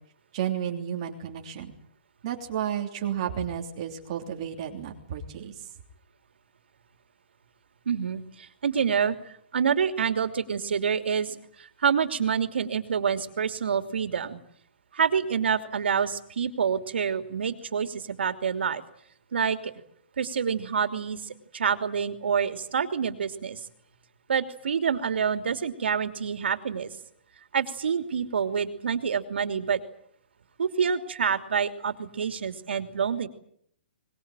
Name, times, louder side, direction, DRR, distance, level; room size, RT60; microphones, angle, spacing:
voice 1, 0.3-1.7 2.2-5.5, right 9 dB, 30° right, 3 dB, 3.2 m, -32 dB
voice 2, 7.9-9.2 9.5-14.4 14.9-18.8 19.3-19.7 20.2-23.6 24.3-26.9 27.5-29.8 30.6-33.3, right 7 dB, 85° right, 8 dB, 2.9 m, -27 dB
23.0 x 21.0 x 9.1 m, 0.67 s
hypercardioid pair, 175°, 6 cm